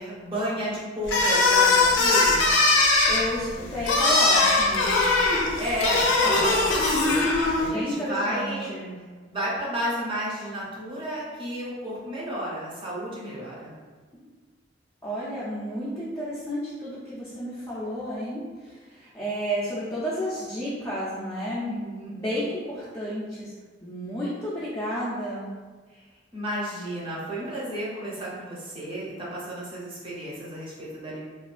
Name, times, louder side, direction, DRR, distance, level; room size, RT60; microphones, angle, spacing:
voice 1, 0.0-2.5 5.6-7.2 7.6-8.7 9.3-13.7 21.6-22.2 26.3-31.2, equal, 30° right, -6 dB, 0.6 m, -32 dB
sound 1, 1.1-7.7, left 3 dB, 85° left, 0.4 m, -21 dB
voice 2, 2.9-5.0 6.2-6.6 7.6-9.0 15.0-21.8 22.0-23.5 23.8-25.5, equal, 15° left, -9 dB, 0.4 m, -32 dB
2.4 x 2.2 x 2.3 m, 1.4 s
head